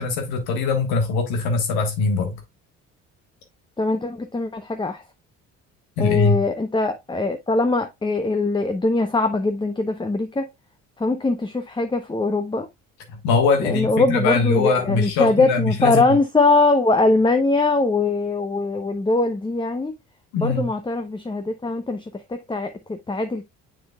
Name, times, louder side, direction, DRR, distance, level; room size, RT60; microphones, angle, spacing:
voice 1, 0.0-2.4 6.0-6.4 13.1-16.0 20.3-20.7, left 4 dB, 70° left, 1.5 m, -22 dB
voice 2, 3.8-5.0 6.0-10.5 11.0-12.7 13.6-19.9 20.4-22.0 22.3-23.4, left 3 dB, 10° left, 0.8 m, -22 dB
7.1 x 6.1 x 2.3 m
hypercardioid pair, 50°, 39 cm